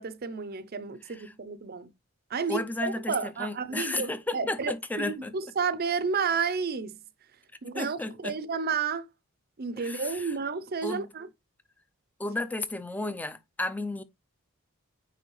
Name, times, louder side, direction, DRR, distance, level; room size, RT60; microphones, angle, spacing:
voice 1, 0.0-1.9 2.3-7.0 7.6-9.1 9.6-11.3, right 5 dB, 45° right, 0.6 m, -31 dB
voice 2, 2.5-5.3 7.7-8.3 9.8-10.3 10.8-11.1 12.2-14.0, left 2 dB, 5° left, 0.5 m, -33 dB
9.0 x 3.3 x 3.2 m
head